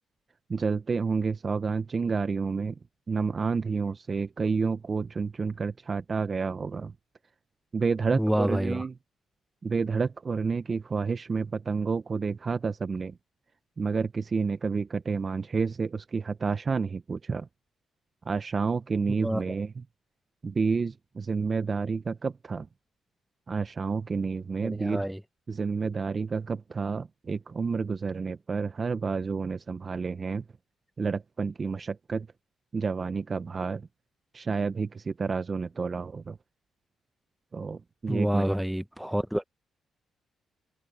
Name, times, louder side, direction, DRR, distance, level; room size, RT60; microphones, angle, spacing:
voice 1, 0.5-2.7 3.1-6.9 7.7-8.9 9.6-13.2 13.8-17.5 18.3-19.8 20.4-22.7 23.5-25.1 25.5-30.4 31.0-32.3 32.7-33.9 34.3-36.4 37.5-38.5, right 5 dB, 40° right, 1.0 m, -30 dB
voice 2, 8.1-8.9 19.2-19.4 24.6-25.2 38.1-39.4, equal, 5° right, 1.0 m, -28 dB
open air
cardioid pair, 70°, 0 cm